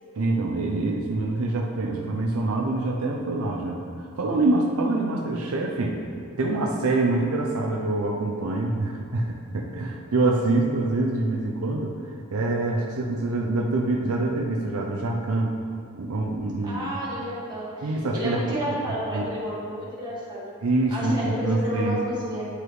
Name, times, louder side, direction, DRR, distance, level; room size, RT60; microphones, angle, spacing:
voice 1, 0.1-3.8 4.2-6.0 6.4-12.0 12.3-15.5 15.9-16.9 17.8-18.6 19.1-19.3 20.6-22.0, right 2 dB, 70° right, -1 dB, 0.6 m, -25 dB
voice 2, 16.6-20.6 20.9-22.5, equal, 20° right, -7 dB, 1.7 m, -31 dB
9.6 x 4.9 x 3.1 m, 2.3 s
head